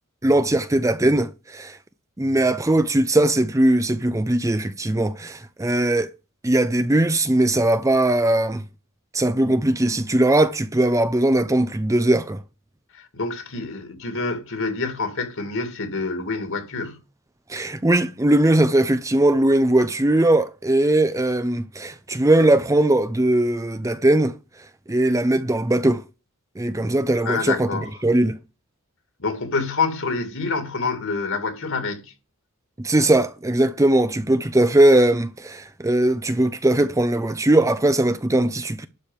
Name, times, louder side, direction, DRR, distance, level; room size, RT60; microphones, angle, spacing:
voice 1, 0.2-1.8 2.2-6.1 6.4-8.6 9.1-12.4 17.5-24.3 24.9-26.0 26.6-27.7 28.0-28.4 32.8-38.9, right 1 dB, 15° right, 0.6 m, -19 dB
voice 2, 12.9-17.0 27.2-27.9 29.2-32.1, left 4 dB, 60° left, 2.5 m, -27 dB
12.0 x 4.9 x 7.3 m
head